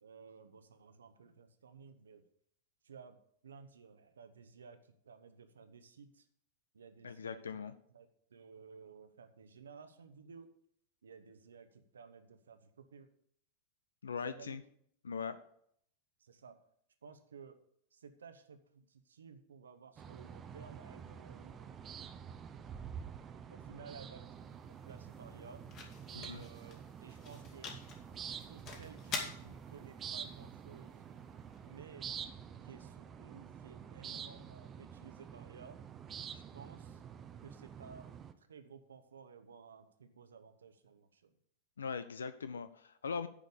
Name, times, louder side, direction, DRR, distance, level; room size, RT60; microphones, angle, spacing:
voice 1, 0.0-2.2 2.8-3.2 3.4-6.2 6.7-7.4 7.9-10.5 11.0-13.1 14.1-14.6 16.2-16.6 17.0-17.6 17.9-21.8 23.5-24.3 24.7-25.7 26.1-27.8 28.4-31.0 31.6-32.1 32.6-35.8 36.3-37.0 37.4-41.3, right 5 dB, 70° right, 10 dB, 0.9 m, -55 dB
voice 2, 7.0-7.7 14.0-14.6 15.0-15.4 26.1-26.4 41.8-43.3, left 5 dB, 70° left, 13 dB, 0.5 m, -40 dB
sound 1, 20.0-38.3, right 8 dB, 25° right, 0.7 m, -48 dB
sound 2, 24.1-32.2, left 4 dB, 35° left, 2.1 m, -48 dB
9.9 x 5.2 x 6.7 m, 0.68 s
figure-of-eight pair, 90°, 0 cm